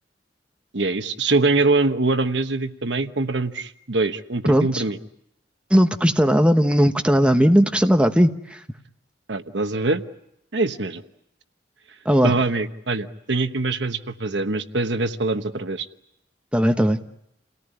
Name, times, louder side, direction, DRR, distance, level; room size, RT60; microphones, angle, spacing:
voice 1, 0.7-5.0 9.3-10.0 10.5-11.0 12.2-15.9, right 3 dB, 70° right, 9 dB, 1.2 m, -23 dB
voice 2, 4.5-4.8 5.7-8.6 12.0-12.3 16.5-17.0, equal, 5° right, 6 dB, 1.1 m, -18 dB
29.0 x 18.0 x 10.0 m, 0.80 s
head